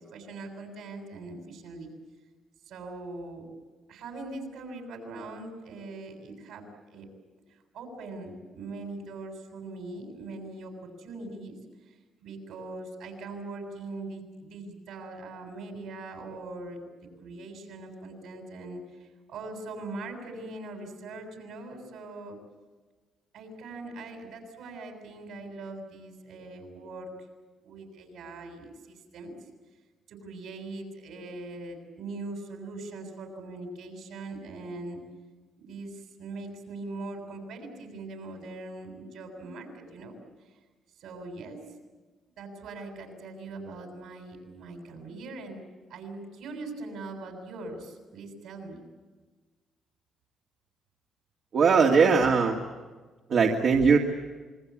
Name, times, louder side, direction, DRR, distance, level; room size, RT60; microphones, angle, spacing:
voice 1, 0.0-1.9 2.7-3.5 3.9-7.1 7.5-11.6 11.8-16.8 17.2-22.4 23.3-27.1 27.6-29.3 30.1-35.0 35.6-40.6 41.0-41.6 42.4-45.6 45.9-48.8, right 2 dB, 80° right, 4 dB, 7.2 m, -41 dB
voice 2, 51.5-52.6 53.3-54.0, right 5 dB, 60° right, 0 dB, 2.4 m, -20 dB
27.5 x 21.5 x 8.7 m, 1.3 s
cardioid pair, 90°, 0 cm